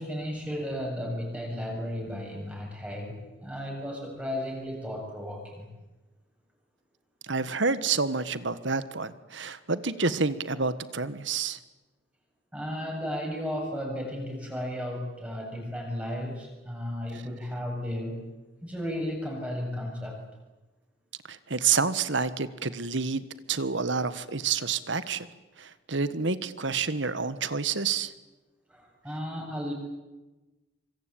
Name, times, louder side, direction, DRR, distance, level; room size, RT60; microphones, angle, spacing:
voice 1, 0.0-5.7 12.5-18.2 18.6-20.2 28.7-29.7, equal, 5° right, 0 dB, 7.7 m, -34 dB
voice 2, 7.3-11.6 21.3-25.3 25.6-28.1, right 5 dB, 70° right, 14 dB, 1.5 m, -28 dB
25.5 x 24.5 x 9.0 m, 1.1 s
head